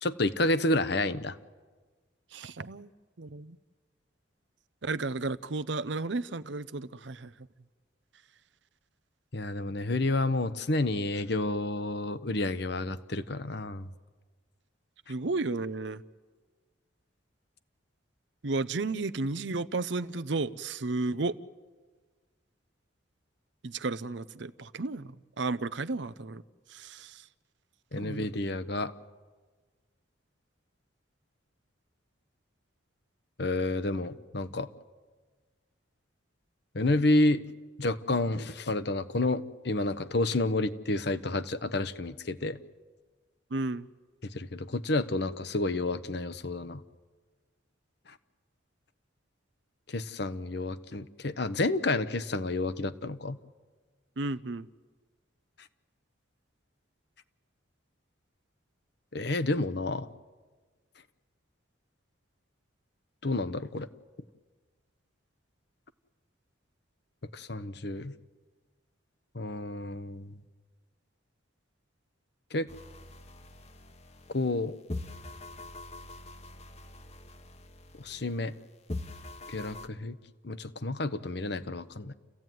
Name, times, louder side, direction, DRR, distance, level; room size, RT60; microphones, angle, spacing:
voice 1, 0.0-1.4 9.3-13.9 27.9-28.9 33.4-34.7 36.7-37.4 37.8-42.6 44.3-46.8 49.9-53.4 59.1-60.1 63.2-63.9 67.3-68.1 69.3-70.3 72.5-72.7 74.3-74.8 78.0-78.5 79.5-80.2 80.4-82.1, left 2 dB, 60° left, 12 dB, 1.0 m, -30 dB
voice 2, 2.3-2.9 3.2-3.6 4.8-7.5 15.1-16.0 18.4-21.4 23.6-26.4 26.7-27.3 28.0-28.3 43.5-43.9 54.2-54.7, right 3 dB, 65° right, 15 dB, 0.7 m, -33 dB
sound 1, 72.7-74.6 74.9-78.6 78.9-79.9, left 2 dB, 35° left, 1.1 m, -43 dB
29.5 x 15.5 x 9.4 m, 1.4 s
head